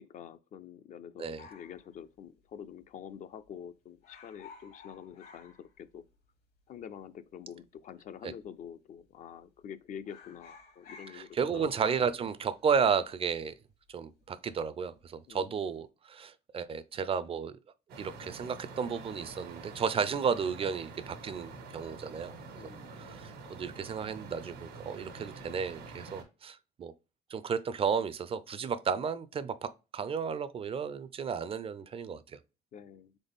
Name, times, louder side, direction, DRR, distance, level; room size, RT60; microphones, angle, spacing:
voice 1, 0.0-6.0 6.7-11.9 15.3-15.5 22.6-22.9 32.7-33.1, left 8 dB, 50° left, 0.4 m, -47 dB
sound 1, 1.4-2.8 3.1-3.2 3.4-3.7 4.0-6.3 6.6-6.7 7.5-8.1 8.4-8.7 9.0-9.6 9.9-14.6 14.9-15.3, left 5 dB, 70° left, 1.6 m, -55 dB
voice 2, 11.1-13.5 13.9-17.6 18.0-22.3 22.9-26.9 27.3-32.2, right 6 dB, 35° right, 0.4 m, -33 dB
sound 2, 17.9-26.2, right 3 dB, 90° right, 1.3 m, -47 dB
4.0 x 3.7 x 3.5 m
cardioid pair, 110°, 17 cm